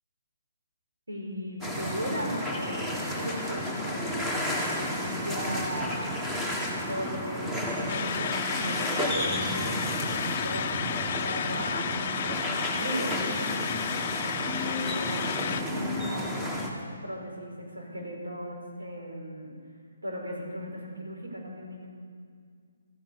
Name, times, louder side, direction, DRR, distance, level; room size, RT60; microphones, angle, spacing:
voice 1, 1.1-4.2 4.8-6.2 6.9-13.7 14.2-16.6 17.0-19.5 20.0-21.9, equal, 90° right, -1 dB, 4.8 m, -37 dB
sound 1, 1.6-16.7, left 1 dB, 10° right, 1.7 m, -32 dB
sound 2, 7.9-15.6, left 8 dB, 45° left, 0.6 m, -33 dB
14.0 x 10.5 x 8.2 m, 2.1 s
figure-of-eight pair, 145°, 0 cm